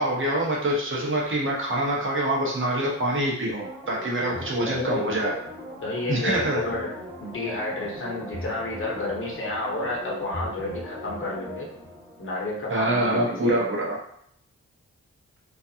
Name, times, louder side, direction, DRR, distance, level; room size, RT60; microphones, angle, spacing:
voice 1, 0.0-5.3 6.1-6.6 12.7-14.0, right 1 dB, 45° right, -4 dB, 0.9 m, -25 dB
sound 1, 3.6-13.0 13.3-13.4, equal, ahead, 1.5 m, -39 dB
voice 2, 4.6-5.1 5.8-6.9 7.2-11.7 12.2-13.6, left 2 dB, 45° left, -3 dB, 0.9 m, -31 dB
2.4 x 2.3 x 2.7 m, 0.71 s
cardioid pair, 65°, 29 cm